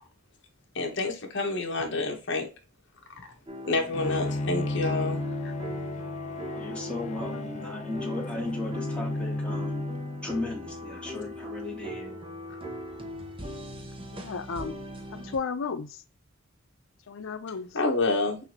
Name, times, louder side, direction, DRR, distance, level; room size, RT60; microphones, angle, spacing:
voice 1, 0.7-2.5 3.7-5.5 17.7-18.5, left 3 dB, 65° left, 1.2 m, -28 dB
sound 1, 3.5-15.4, left 1 dB, 25° right, 0.9 m, -39 dB
Bowed string instrument, 3.9-10.6, left 1 dB, 35° left, 0.4 m, -34 dB
voice 2, 6.5-9.8 10.2-12.1, left 2 dB, 5° left, 1.4 m, -36 dB
voice 3, 14.1-14.7 15.1-15.9 17.1-17.7, left 5 dB, 85° left, 0.5 m, -33 dB
6.1 x 2.7 x 2.8 m
head